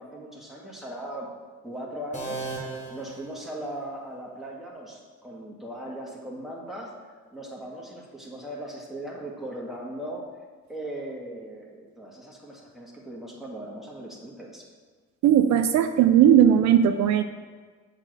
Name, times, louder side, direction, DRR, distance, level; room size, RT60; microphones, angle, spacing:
voice 1, 0.0-1.3 1.6-7.0 7.3-10.3 10.7-14.6, right 1 dB, ahead, -3 dB, 2.3 m, -38 dB
sound 1, 2.1-4.0, right 3 dB, 25° left, 2.0 m, -37 dB
voice 2, 15.2-17.2, right 9 dB, 70° right, 9 dB, 0.5 m, -18 dB
7.2 x 4.1 x 6.6 m, 1.4 s
supercardioid pair, 55°, 30 cm